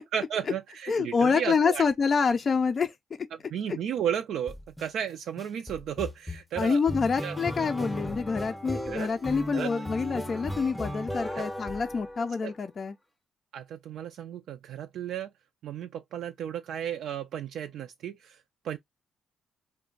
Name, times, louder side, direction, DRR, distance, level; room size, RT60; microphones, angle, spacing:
voice 1, 0.1-1.8 3.5-6.8 7.2-7.4 8.8-9.1 9.5-9.7 11.3-11.5 12.4-12.5 13.5-15.3 15.6-18.8, right 9 dB, 75° right, 0.3 m, -34 dB
voice 2, 0.9-2.9 6.6-12.9, left 5 dB, 45° left, 0.3 m, -27 dB
sound 1, 4.5-4.9 5.4-12.6, equal, 5° left, 0.6 m, -36 dB
2.4 x 2.1 x 3.7 m
cardioid pair, 90°, 0 cm